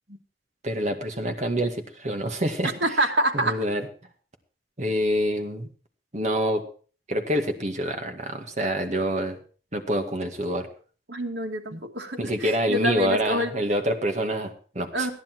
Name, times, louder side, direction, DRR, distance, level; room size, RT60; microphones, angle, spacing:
voice 1, 0.6-2.7 3.3-3.9 4.8-5.7 6.1-6.6 7.1-9.4 9.7-10.7 11.7-11.8 12.2-15.1, right 1 dB, 40° right, 5 dB, 2.0 m, -26 dB
voice 2, 2.8-3.6 11.1-13.5 14.9-15.1, equal, 80° right, 3 dB, 2.4 m, -26 dB
15.5 x 10.5 x 4.5 m, 0.39 s
head